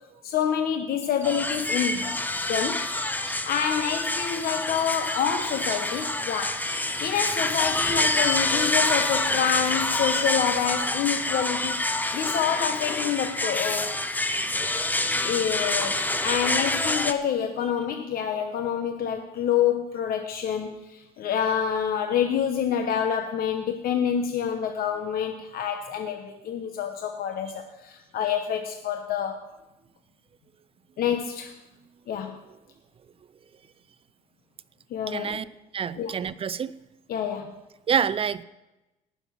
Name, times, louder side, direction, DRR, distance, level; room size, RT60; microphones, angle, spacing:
voice 1, 0.2-2.2 2.5-2.9 3.2-6.7 7.0-13.9 15.2-29.5 31.0-31.5 32.1-32.4 34.9-35.4 36.0-36.1 37.1-37.6, left 8 dB, 60° left, 5 dB, 1.1 m, -27 dB
sound 1, 1.0-6.0 6.3-7.9, right 3 dB, 15° right, 1.6 m, -44 dB
sound 2, 1.2-17.1, left 2 dB, 10° left, 0.7 m, -27 dB
voice 2, 35.1-35.4 35.7-36.7 37.9-38.4, right 7 dB, 35° right, 16 dB, 0.5 m, -27 dB
18.0 x 7.1 x 5.8 m, 0.98 s
cardioid pair, 110°, 17 cm